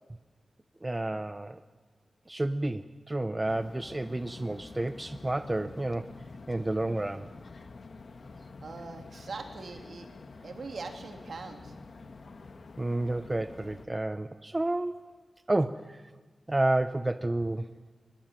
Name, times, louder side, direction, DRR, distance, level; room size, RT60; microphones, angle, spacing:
voice 1, 0.8-1.6 2.3-6.1 6.5-7.3 12.8-15.1 15.5-16.0 16.5-17.7, right 2 dB, 20° right, 11 dB, 0.7 m, -30 dB
sound 1, 3.5-13.9, left 3 dB, 60° left, 1.5 m, -48 dB
voice 2, 8.6-10.1 10.4-11.7, right 4 dB, 70° right, 4 dB, 3.0 m, -41 dB
23.5 x 20.5 x 9.1 m, 1.3 s
wide cardioid pair, 95°, 0 cm